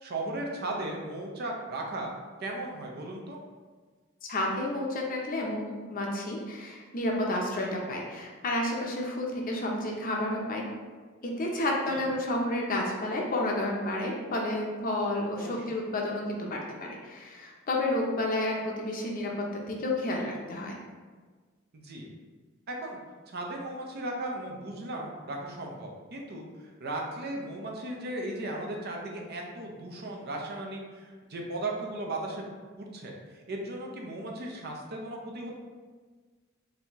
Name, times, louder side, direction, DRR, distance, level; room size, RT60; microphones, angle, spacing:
voice 1, 0.0-2.1 2.4-3.4 11.9-12.0 15.4-15.5 21.7-22.1 22.7-23.0 23.3-32.5 32.7-35.5, right 2 dB, 50° right, 0 dB, 0.6 m, -36 dB
voice 2, 4.3-10.6 11.2-20.8, left 1 dB, 45° left, -1 dB, 0.6 m, -31 dB
4.0 x 2.7 x 3.0 m, 1.4 s
head